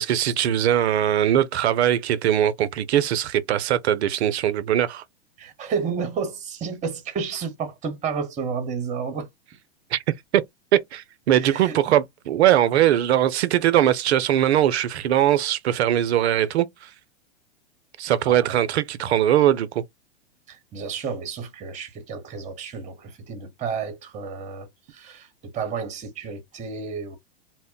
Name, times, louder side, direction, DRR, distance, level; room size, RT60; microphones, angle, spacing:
voice 1, 0.0-5.0 9.9-10.0 10.3-10.4 10.7-16.9 18.0-19.8, right 11 dB, 75° right, 0.5 m, -21 dB
voice 2, 5.4-9.3 11.4-11.8 18.2-18.5 20.5-27.2, right 5 dB, 20° right, 0.9 m, -31 dB
2.1 x 2.1 x 3.7 m
hypercardioid pair, 115°, 32 cm